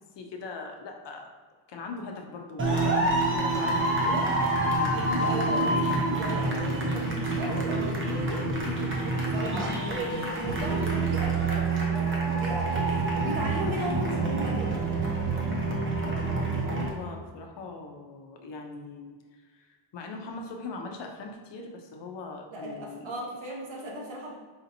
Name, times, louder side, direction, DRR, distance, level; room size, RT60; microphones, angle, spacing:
voice 1, 0.0-1.4 1.7-5.0 16.0-19.2 19.5-23.1, left 3 dB, 60° left, 3 dB, 0.6 m, -41 dB
sound 1, 2.6-16.9, right 2 dB, 25° right, 0.6 m, -27 dB
voice 2, 4.9-14.8 16.7-17.1 22.5-24.3, right 1 dB, 70° right, -3 dB, 1.2 m, -36 dB
4.9 x 2.8 x 2.6 m, 1.5 s
wide cardioid pair, 155°, 48 cm